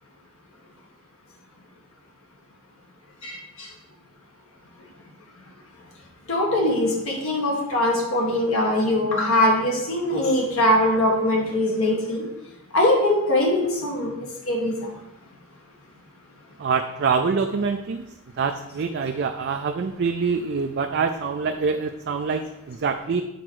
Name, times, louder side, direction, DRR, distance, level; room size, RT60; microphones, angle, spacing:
voice 1, 3.2-3.7 6.3-12.2 12.7-14.1 14.5-14.7, left 1 dB, 70° left, -1 dB, 1.6 m, -22 dB
voice 2, 16.6-18.1 18.4-23.2, right 5 dB, 50° right, 5 dB, 0.4 m, -25 dB
8.0 x 4.3 x 4.6 m, 0.92 s
head